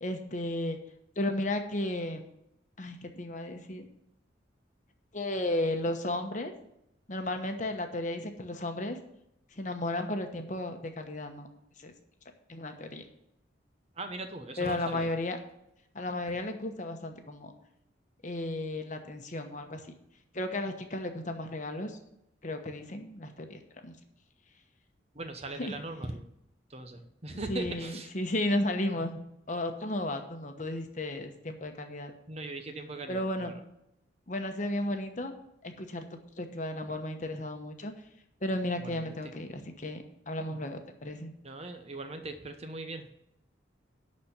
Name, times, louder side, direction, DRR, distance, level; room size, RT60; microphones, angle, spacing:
voice 1, 0.0-0.8 1.2-2.3 2.8-3.9 5.1-6.5 7.1-9.0 9.6-11.5 11.8-11.9 12.5-13.0 14.6-15.4 15.9-17.5 18.2-19.8 20.3-22.0 22.4-24.0 25.6-25.7 27.5-29.2 29.5-32.1 33.1-33.5 34.3-35.3 35.6-37.9 38.4-41.3, left 1 dB, 40° left, 6 dB, 1.0 m, -34 dB
voice 2, 14.0-15.1 25.1-26.2 26.7-28.1 32.3-33.6 38.8-39.3 41.4-43.1, right 2 dB, 35° right, 7 dB, 0.8 m, -40 dB
11.5 x 4.3 x 8.0 m, 0.80 s
head